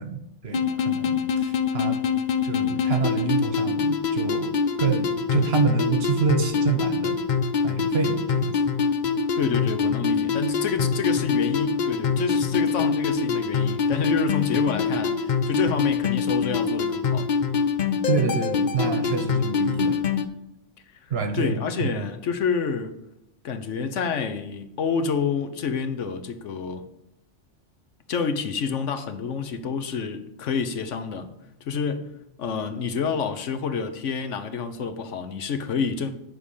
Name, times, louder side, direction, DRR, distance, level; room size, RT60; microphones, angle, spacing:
voice 1, 0.0-2.0 2.4-4.5 4.8-7.2 7.6-8.6 18.1-20.0 21.1-21.9, right 5 dB, 55° right, 1.2 m, -27 dB
sound 1, 0.5-20.2, left 5 dB, 50° left, 0.6 m, -24 dB
voice 2, 9.4-17.3 21.3-22.9 23.4-26.8 28.1-31.3 31.6-32.1 32.4-36.1, left 5 dB, 75° left, 1.2 m, -28 dB
11.0 x 3.8 x 7.1 m
omnidirectional pair, 1.3 m